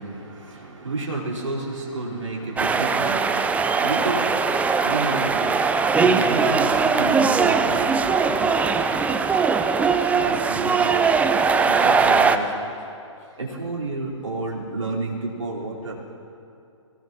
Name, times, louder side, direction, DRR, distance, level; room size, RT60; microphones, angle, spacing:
voice 1, 0.0-11.0 11.6-12.7 13.2-16.1, right 2 dB, 80° right, -5 dB, 4.6 m, -31 dB
sound 1, 2.6-12.4, right 5 dB, 10° right, 0.5 m, -20 dB
23.0 x 19.0 x 3.1 m, 2.6 s
figure-of-eight pair, 125°, 16 cm